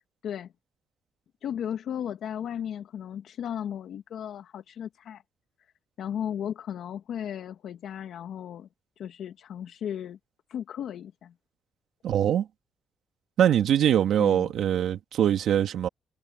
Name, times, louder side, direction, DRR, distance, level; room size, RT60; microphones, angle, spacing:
voice 1, 1.4-5.2 6.0-8.7 9.0-10.2 10.5-11.3 14.2-14.5, left 9 dB, 70° left, 2.1 m, -35 dB
voice 2, 12.0-12.5 13.4-15.9, right 10 dB, 70° right, 2.6 m, -23 dB
cardioid pair, 90°, 0 cm